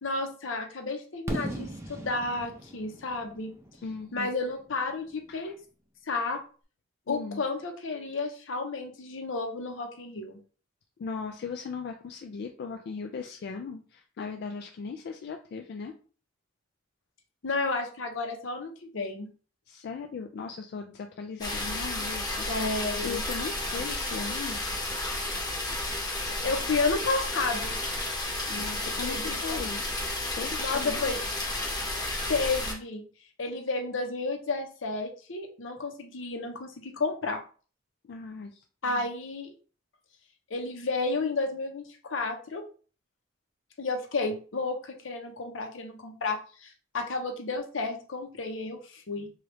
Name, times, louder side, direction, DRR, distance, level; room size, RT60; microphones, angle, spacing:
voice 1, 0.0-3.5 4.1-5.5 6.1-6.4 7.1-10.4 17.4-19.3 22.5-23.2 26.4-27.8 29.0-29.4 30.6-31.2 32.3-33.1 33.4-37.4 38.8-39.5 40.5-42.6 43.8-49.3, left 3 dB, 80° left, 4 dB, 0.7 m, -32 dB
Fireworks, 1.3-5.1, right 1 dB, 15° right, 0.4 m, -38 dB
voice 2, 3.8-4.3 5.3-5.5 7.1-7.4 11.0-15.9 19.7-22.5 23.0-24.6 28.5-29.8 30.4-31.0 38.0-38.6, left 5 dB, 60° left, 4 dB, 0.3 m, -38 dB
sound 1, 21.4-32.7, left 2 dB, 20° left, 0.9 m, -32 dB
3.0 x 2.3 x 3.2 m, 0.39 s
head